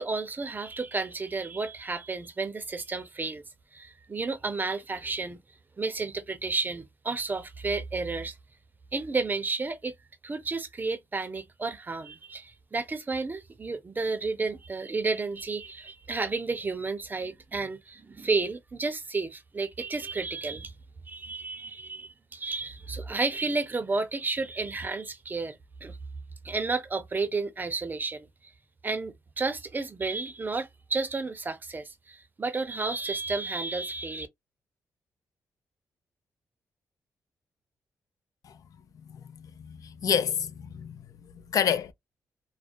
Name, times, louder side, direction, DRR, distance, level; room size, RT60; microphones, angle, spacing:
voice 1, 0.0-3.4 3.7-5.4 5.8-8.4 8.9-9.9 10.2-20.7 21.1-26.0 26.4-28.3 28.8-34.3, right 3 dB, 30° right, 0.6 m, -32 dB
voice 2, 38.9-41.9, left 8 dB, 60° left, 0.4 m, -30 dB
2.4 x 2.1 x 2.5 m
cardioid pair, 75°, 7 cm